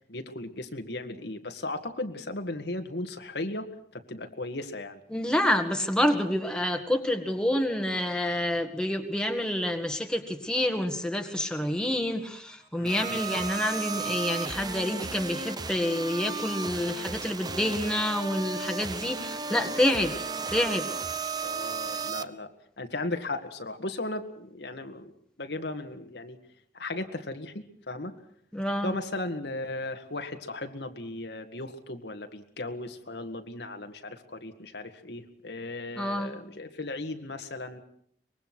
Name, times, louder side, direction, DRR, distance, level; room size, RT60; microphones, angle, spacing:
voice 1, 0.0-3.7 3.9-5.0 12.7-13.2 19.5-19.7 21.4-25.1 25.4-26.4 26.7-28.1 28.8-37.8, left 2 dB, 70° left, 6 dB, 1.9 m, -36 dB
voice 2, 5.1-20.1 20.5-20.9 28.5-28.9 36.0-36.4, left 1 dB, 5° left, 4 dB, 1.9 m, -28 dB
sound 1, 12.9-22.2, right 4 dB, 25° right, 0.9 m, -34 dB
24.5 x 21.5 x 6.2 m, 0.66 s
head